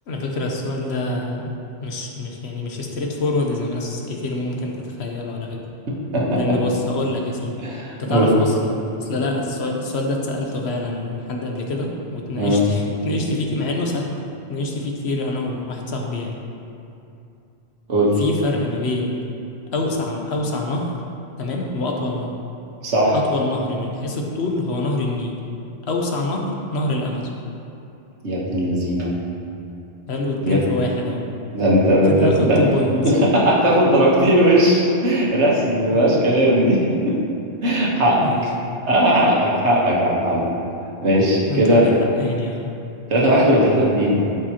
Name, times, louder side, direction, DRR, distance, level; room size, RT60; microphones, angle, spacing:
voice 1, 0.1-1.5 1.8-5.6 6.4-7.6 8.0-14.1 14.5-16.3 18.2-19.1 19.7-20.9 21.4-22.3 23.1-25.4 25.9-27.3 30.1-31.2 32.0-33.0 35.9-36.1 38.2-38.5 41.5-42.7, left 2 dB, 75° left, 0 dB, 1.2 m, -25 dB
voice 2, 7.6-8.3 12.3-12.6 17.9-18.2 22.8-23.2 28.2-29.1 30.4-30.7 31.5-32.6 32.9-37.2 37.6-38.3 38.8-40.5 41.0-41.8 43.1-44.3, equal, 85° right, -4 dB, 1.6 m, -18 dB
12.5 x 5.3 x 2.9 m, 2.7 s
omnidirectional pair, 1.1 m